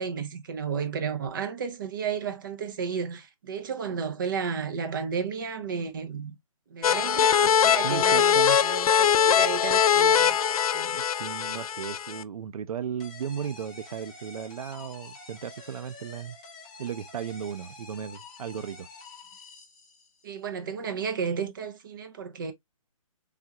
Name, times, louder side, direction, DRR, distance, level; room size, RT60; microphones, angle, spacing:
voice 1, 0.0-6.4 6.7-10.4 10.7-11.0 20.2-22.5, right 6 dB, 35° right, 0.6 m, -33 dB
sound 1, 6.8-12.2, left 8 dB, 80° left, 0.4 m, -22 dB
voice 2, 7.7-8.6 10.9-16.4 16.8-18.9, right 8 dB, 80° right, 0.5 m, -35 dB
sound 2, 13.0-20.3, left 3 dB, 10° left, 0.4 m, -48 dB
3.4 x 2.4 x 2.7 m
hypercardioid pair, 170°, 18 cm